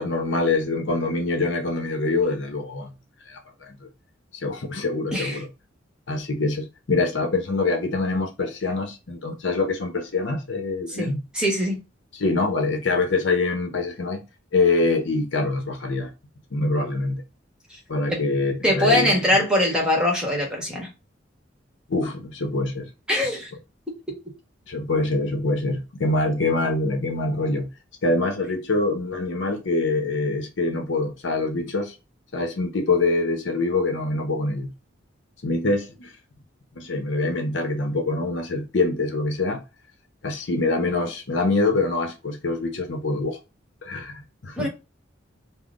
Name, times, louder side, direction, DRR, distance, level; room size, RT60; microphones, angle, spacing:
voice 1, 0.0-2.9 3.3-3.8 4.4-5.5 6.1-11.2 12.2-14.2 14.5-16.1 16.5-17.2 17.9-19.2 21.9-22.9 24.7-27.7 28.0-31.9 32.3-34.7 35.4-36.1 36.7-39.6 40.2-43.4 43.8-44.7, left 3 dB, 65° left, 0.7 m, -24 dB
voice 2, 5.1-5.4 10.9-11.1 11.3-11.8 18.1-18.2 18.6-20.9 23.1-23.5 23.9-24.1 44.6-44.7, left 1 dB, 5° right, 1.1 m, -22 dB
5.5 x 2.0 x 2.5 m
head